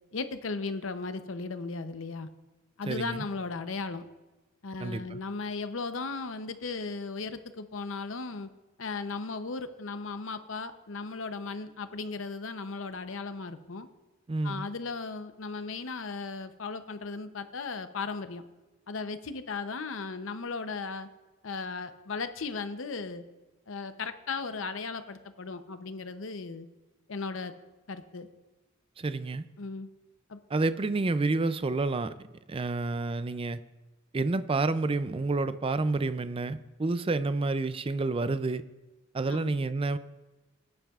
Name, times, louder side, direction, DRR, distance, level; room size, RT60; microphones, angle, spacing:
voice 1, 0.1-2.3 2.8-4.0 4.6-8.5 8.8-13.9 14.4-18.4 18.9-21.1 21.4-23.2 23.7-26.7 27.1-27.5 27.9-28.3 29.6-29.9 30.3-30.4 39.3-39.6, left 4 dB, 70° left, 10 dB, 0.7 m, -36 dB
voice 2, 2.9-3.2 4.8-5.2 14.3-14.7 29.0-29.4 30.5-32.1 32.5-33.6 34.1-38.6 39.1-40.0, right 3 dB, 25° right, 13 dB, 0.4 m, -29 dB
20.0 x 10.5 x 2.4 m, 1.1 s
head